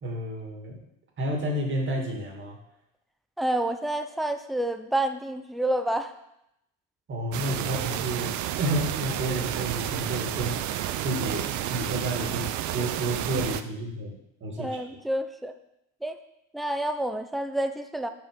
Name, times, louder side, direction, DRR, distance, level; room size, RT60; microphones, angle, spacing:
voice 1, 0.0-0.8 1.2-2.6 7.1-8.3 8.6-11.4 11.7-12.4 12.7-15.0, right 1 dB, 35° right, 1 dB, 2.0 m, -30 dB
voice 2, 3.4-6.1 14.6-15.5 16.0-16.2 16.5-18.1, right 1 dB, ahead, 8 dB, 0.5 m, -28 dB
sound 1, 7.3-13.6, right 12 dB, 55° right, 0.6 m, -31 dB
6.8 x 4.9 x 5.1 m, 0.81 s
supercardioid pair, 95°, 34 cm